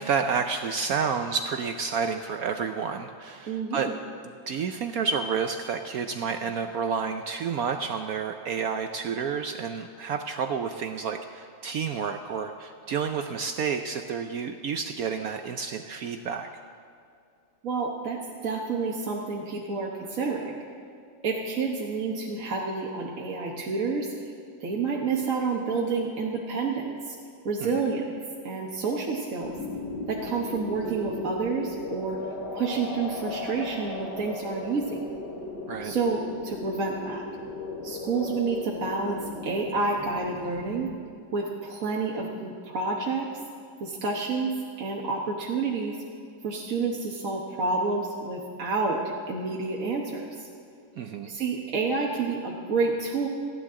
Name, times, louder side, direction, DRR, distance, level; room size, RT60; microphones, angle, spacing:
voice 1, 0.0-3.9 4.2-16.5 27.6-27.8 35.7-36.0 51.0-51.3, right 6 dB, 75° right, 6 dB, 0.8 m, -30 dB
voice 2, 3.4-3.9 17.6-20.5 21.2-24.1 24.6-27.1 27.4-28.0 28.4-29.5 30.1-32.2 32.5-35.0 35.8-37.2 37.8-39.2 39.4-40.9 41.3-43.3 43.8-44.5 44.8-45.9 46.4-49.0 49.3-50.5 51.3-53.3, right 4 dB, 45° right, -3 dB, 1.4 m, -29 dB
sound 1, 29.4-40.9, left 2 dB, 60° left, 2.2 m, -37 dB
29.0 x 10.5 x 3.7 m, 2.5 s
omnidirectional pair, 2.2 m